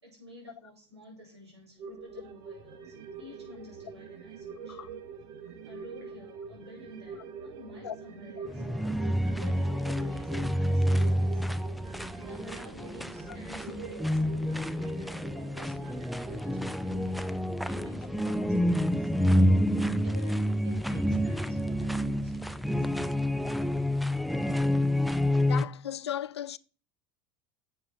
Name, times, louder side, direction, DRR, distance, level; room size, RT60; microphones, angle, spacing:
voice 1, 0.0-4.8 5.7-8.6 9.3-11.4 12.2-17.3 17.7-19.1 20.0-23.1, left 2 dB, 85° right, 5.9 m, -51 dB
sound 1, 1.8-18.6 18.9-19.0, right 5 dB, 60° right, 1.9 m, -45 dB
sound 2, 8.5-25.7, equal, ahead, 0.7 m, -28 dB
voice 2, 25.5-26.6, left 10 dB, 85° left, 0.5 m, -36 dB
9.5 x 7.6 x 5.8 m
hypercardioid pair, 80°, 14 cm